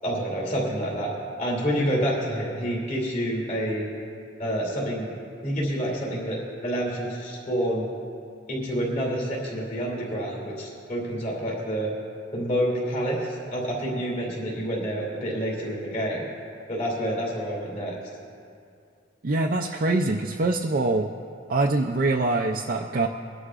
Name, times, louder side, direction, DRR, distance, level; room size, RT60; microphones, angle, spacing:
voice 1, 0.0-1.1 1.4-3.9 4.4-5.1 5.4-7.9 8.5-11.9 12.3-16.2 16.7-17.9, equal, 40° left, -3 dB, 2.9 m, -28 dB
voice 2, 19.2-21.1 21.5-23.1, right 2 dB, 45° right, 1 dB, 0.5 m, -24 dB
23.0 x 11.0 x 2.5 m, 2.4 s
head